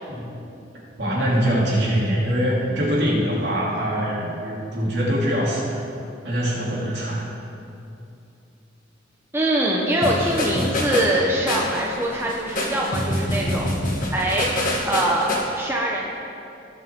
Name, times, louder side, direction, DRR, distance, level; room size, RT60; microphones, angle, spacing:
voice 1, 1.0-5.8 6.2-7.2, equal, 60° right, -5 dB, 2.9 m, -23 dB
voice 2, 9.3-14.5 14.8-16.1, right 1 dB, 10° right, -3 dB, 0.9 m, -23 dB
sound 1, 10.0-15.4, left 1 dB, 45° left, 1.8 m, -26 dB
19.0 x 6.4 x 3.7 m, 2.6 s
head